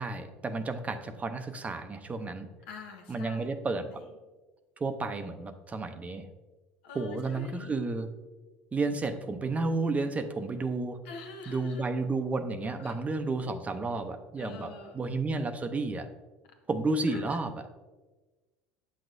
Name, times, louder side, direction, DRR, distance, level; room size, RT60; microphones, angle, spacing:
voice 1, 0.0-2.5 3.1-4.0 4.8-6.3 6.9-8.1 8.7-11.0 11.5-16.1 16.7-17.9, right 3 dB, 25° right, 9 dB, 0.6 m, -32 dB
voice 2, 2.7-3.5 3.9-4.0 6.8-7.8 11.0-11.9 12.8-13.0 14.4-15.1 17.1-17.4, left 5 dB, 80° left, 3 dB, 1.1 m, -46 dB
8.3 x 6.1 x 2.6 m, 1.2 s
hypercardioid pair, 85°, 6 cm